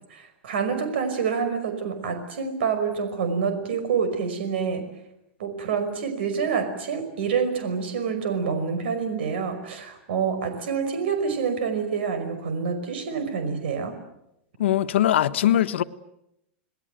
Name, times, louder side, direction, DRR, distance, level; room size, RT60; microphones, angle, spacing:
voice 1, 0.1-4.9 5.4-14.0, right 6 dB, 70° right, 5.4 m, -27 dB
voice 2, 14.6-15.8, left 11 dB, 90° left, 1.3 m, -21 dB
28.5 x 20.0 x 9.2 m
supercardioid pair, 175°, 6 cm